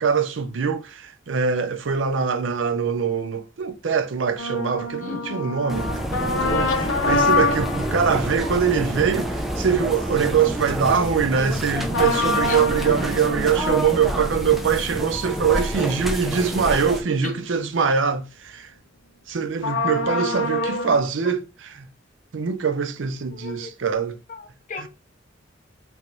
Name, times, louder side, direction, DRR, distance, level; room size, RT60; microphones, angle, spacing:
voice 1, 0.0-6.1 6.4-18.7 19.3-21.9 22.3-24.2 24.8-24.9, right 6 dB, 80° right, 0.5 m, -23 dB
sound 1, 4.4-10.3 11.9-17.2 17.6-17.7 19.6-21.0, left 3 dB, 85° left, 0.6 m, -27 dB
voice 2, 5.0-5.5 12.4-12.6 17.2-17.4 20.5-20.9 23.3-23.8 24.3-24.9, left 3 dB, 45° left, 0.7 m, -35 dB
sound 2, 5.7-17.0, right 1 dB, ahead, 0.4 m, -28 dB
3.3 x 2.5 x 3.0 m
head